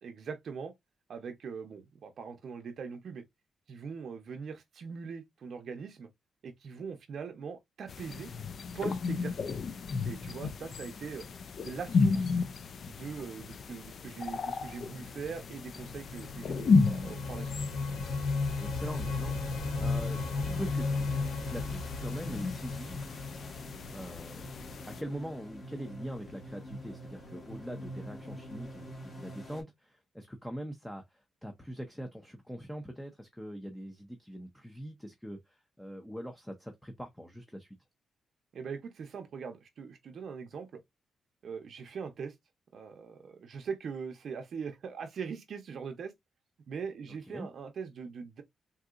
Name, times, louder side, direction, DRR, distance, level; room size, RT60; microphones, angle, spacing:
voice 1, 0.0-0.7 1.1-3.2 3.7-6.1 6.4-8.3 8.7-9.5 10.0-11.3 11.6-12.3 12.9-17.5 38.5-40.8 41.4-42.3 42.7-46.1 46.7-48.4, right 6 dB, 55° right, 0.6 m, -41 dB
sound 1, 7.9-25.0, left 4 dB, 50° left, 0.3 m, -34 dB
sound 2, 15.5-24.3, left 3 dB, 90° left, 1.1 m, -35 dB
voice 2, 18.6-23.0 23.9-24.4 24.9-37.8 47.3-47.5, equal, 5° left, 0.6 m, -42 dB
sound 3, 18.7-29.6, equal, 30° left, 1.7 m, -47 dB
3.8 x 2.7 x 2.4 m
cardioid pair, 125°, 0 cm